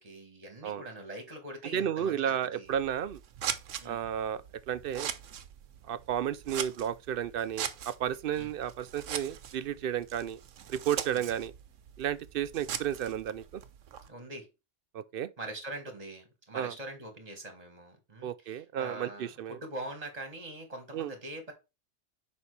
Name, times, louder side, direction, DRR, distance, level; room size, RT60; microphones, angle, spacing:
voice 1, 0.0-2.7 3.8-4.0 8.3-8.5 11.1-11.2 14.1-14.5 15.4-21.5, right 1 dB, 30° right, 1.5 m, -43 dB
voice 2, 1.7-3.2 3.8-5.1 5.9-10.4 10.7-11.5 12.0-13.6 14.9-15.3 16.5-16.7 18.2-19.6 20.9-21.1, right 9 dB, 60° right, 0.6 m, -33 dB
Scissors, 2.6-14.1, right 9 dB, 85° right, 1.1 m, -41 dB
7.1 x 5.2 x 3.2 m
omnidirectional pair, 1.3 m